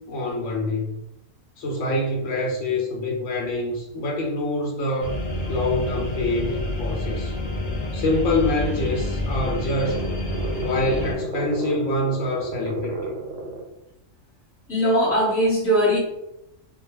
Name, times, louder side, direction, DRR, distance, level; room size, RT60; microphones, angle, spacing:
voice 1, 0.1-1.0 1.6-5.1 5.5-7.3 7.9-10.0 10.6-13.1, left 2 dB, 75° left, -1 dB, 0.9 m, -25 dB
sound 1, 5.0-11.1, left 1 dB, 60° left, 0.4 m, -28 dB
sound 2, 8.9-13.7, right 2 dB, 65° right, 0.7 m, -33 dB
voice 2, 14.7-16.0, equal, 10° left, -5 dB, 0.9 m, -20 dB
2.2 x 2.2 x 2.9 m, 0.84 s
omnidirectional pair, 1.3 m